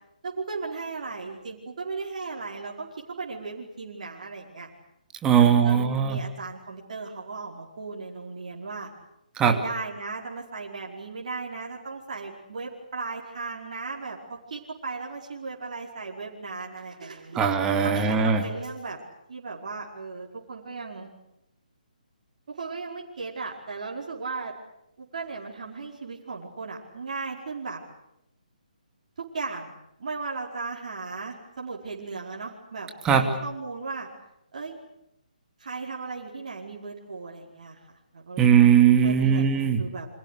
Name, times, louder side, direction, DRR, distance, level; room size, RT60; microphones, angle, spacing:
voice 1, 0.2-2.9 3.2-4.7 5.3-8.9 9.4-17.4 17.8-19.0 19.3-21.1 22.5-24.5 25.0-27.8 29.2-29.7 30.0-34.1 34.5-34.8 35.6-37.8 38.1-38.7 39.0-39.4 39.8-40.1, right 4 dB, 50° right, -2 dB, 4.9 m, -36 dB
voice 2, 5.2-6.2 9.4-9.6 17.3-18.4 33.0-33.2 38.4-39.8, right 8 dB, 15° right, 5 dB, 2.9 m, -19 dB
30.0 x 25.5 x 6.6 m, 0.81 s
figure-of-eight pair, 140°, 5 cm